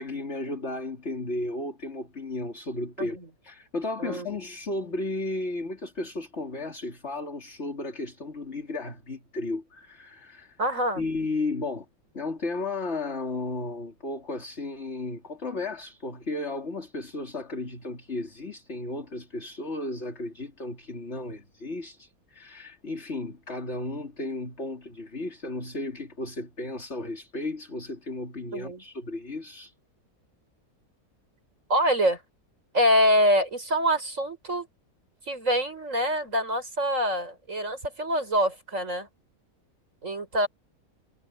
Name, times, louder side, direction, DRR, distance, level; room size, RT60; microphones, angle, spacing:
voice 1, 0.0-3.2 3.4-10.6 11.0-11.8 12.1-29.7, left 2 dB, 45° left, 3.4 m, -34 dB
voice 2, 10.6-11.0 28.5-28.8 31.7-32.2 32.7-34.7 35.3-39.1 40.0-40.5, equal, 60° right, 7.0 m, -25 dB
omnidirectional pair, 1.5 m